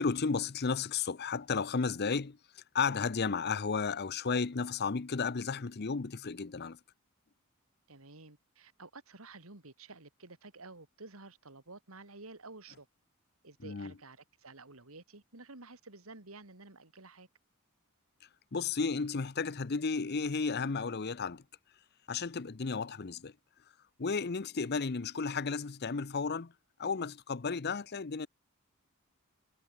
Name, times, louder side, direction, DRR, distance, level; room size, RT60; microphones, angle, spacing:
voice 1, 0.0-6.8 13.6-13.9 18.5-21.4 22.1-23.3 24.0-26.5 26.8-28.3, left 5 dB, 50° left, 0.7 m, -33 dB
voice 2, 7.9-12.9 13.4-17.3, right 3 dB, 75° right, 2.9 m, -51 dB
head